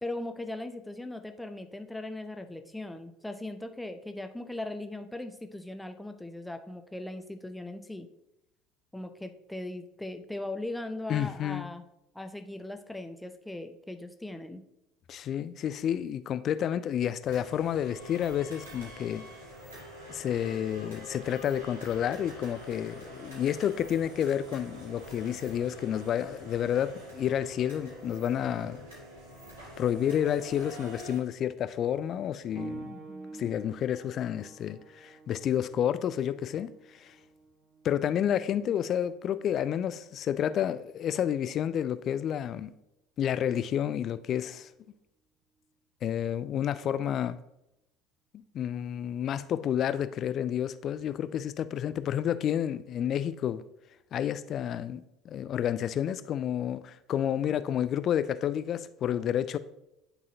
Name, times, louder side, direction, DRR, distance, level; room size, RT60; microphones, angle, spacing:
voice 1, 0.0-8.1 8.9-11.8 12.1-14.6 32.8-33.4, left 2 dB, 5° left, 0.6 m, -39 dB
voice 2, 11.1-11.7 15.1-19.2 20.1-28.9 29.8-33.0 33.3-37.1 37.8-42.7 43.2-44.7 46.0-47.4 48.3-53.6 54.1-59.6, left 10 dB, 45° left, 0.3 m, -30 dB
sound 1, 17.2-31.2, equal, 75° right, 2.1 m, -46 dB
sound 2, 32.5-42.8 43.7-43.8 44.6-44.7, right 3 dB, 35° right, 0.8 m, -49 dB
10.0 x 4.0 x 2.7 m
figure-of-eight pair, 65°, 0 cm